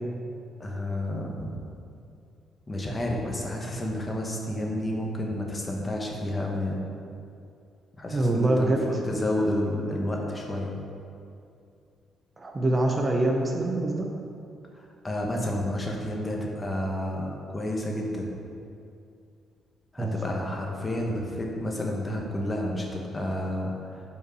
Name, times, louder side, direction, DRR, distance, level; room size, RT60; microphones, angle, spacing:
voice 1, 0.6-1.5 2.7-6.8 8.0-10.7 14.7-18.3 19.9-24.0, left 1 dB, 25° left, -1 dB, 1.2 m, -30 dB
voice 2, 8.1-8.8 12.4-14.0 20.0-20.2, right 2 dB, 30° right, 1 dB, 0.8 m, -24 dB
5.7 x 4.5 x 6.2 m, 2.5 s
cardioid pair, 90°, 0 cm